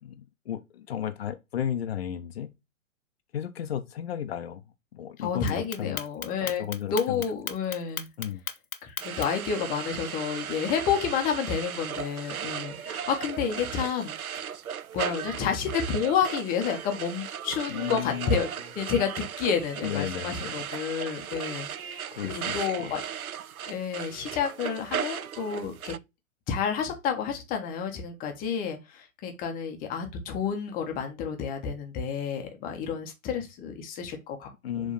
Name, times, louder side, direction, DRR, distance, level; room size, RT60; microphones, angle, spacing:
voice 1, 0.0-2.5 3.3-4.6 4.9-6.1 6.4-7.2 8.2-8.4 17.7-18.3 19.8-20.7 22.1-22.9 34.6-34.9, left 10 dB, 45° left, 1.1 m, -34 dB
voice 2, 5.2-6.6 6.9-8.1 8.8-14.5 14.9-18.5 18.7-23.0 23.6-26.0 26.5-34.5 34.7-34.9, left 7 dB, 20° left, 1.4 m, -30 dB
Clock, 5.5-9.5, left 6 dB, 80° left, 1.2 m, -35 dB
sound 1, 9.0-26.0, right 8 dB, 80° right, 0.6 m, -36 dB
7.0 x 3.7 x 4.1 m
figure-of-eight pair, 120°, 42 cm